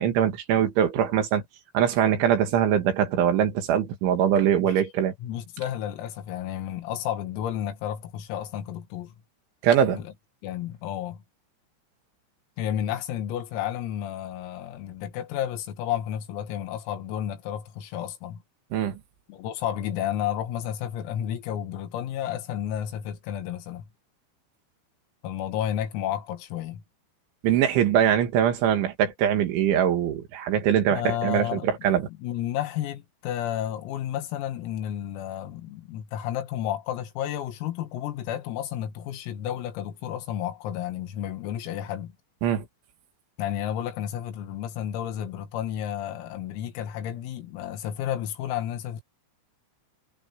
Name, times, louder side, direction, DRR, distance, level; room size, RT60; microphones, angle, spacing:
voice 1, 0.0-1.4 1.7-5.1 9.6-10.0 18.7-19.0 27.4-32.1 42.4-42.7, right 9 dB, 70° right, 4.5 m, -22 dB
voice 2, 5.2-9.2 9.9-10.1 10.4-11.2 12.6-18.4 19.3-23.9 25.2-26.8 30.9-31.7 32.2-42.1 43.4-49.0, left 11 dB, 90° left, 4.6 m, -31 dB
omnidirectional pair, 5.9 m